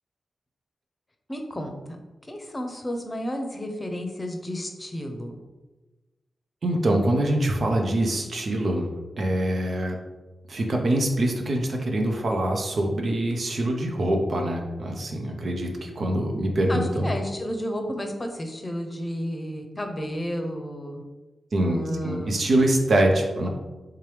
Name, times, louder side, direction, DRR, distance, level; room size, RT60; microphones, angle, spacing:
voice 1, 1.3-1.7 2.3-5.4 16.7-21.0 21.6-22.5, equal, 30° left, 4 dB, 0.7 m, -32 dB
voice 2, 6.6-8.9 9.2-10.0 10.5-17.1 21.5-23.5, right 1 dB, 65° right, 2 dB, 0.7 m, -24 dB
3.6 x 2.9 x 3.3 m, 1.1 s
supercardioid pair, 40°, 0 cm